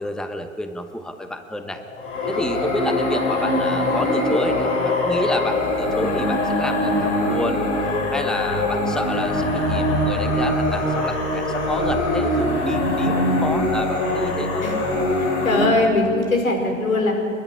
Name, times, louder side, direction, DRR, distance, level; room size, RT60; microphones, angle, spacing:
voice 1, 0.0-1.8 2.3-7.7 8.1-14.7, left 1 dB, ahead, 7 dB, 1.1 m, -29 dB
sound 1, 1.5-9.6, left 3 dB, 15° left, 2.3 m, -30 dB
sound 2, 2.0-15.7, left 1 dB, 60° left, 6.5 m, -23 dB
voice 2, 15.1-17.1, left 2 dB, 80° left, 2 dB, 5.1 m, -21 dB
27.5 x 11.5 x 9.9 m, 2.2 s
figure-of-eight pair, 95°, 40 cm